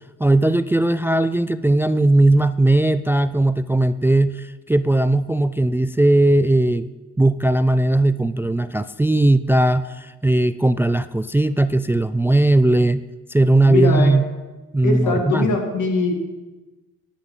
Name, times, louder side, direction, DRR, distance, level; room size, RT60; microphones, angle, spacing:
voice 1, 0.2-6.9 7.2-14.2 14.7-15.6, right 2 dB, 10° right, 14 dB, 0.3 m, -18 dB
voice 2, 13.7-14.2 14.8-16.1, left 3 dB, 75° left, 3 dB, 2.2 m, -21 dB
13.0 x 5.9 x 7.2 m, 1.2 s
cardioid pair, 75°, 30 cm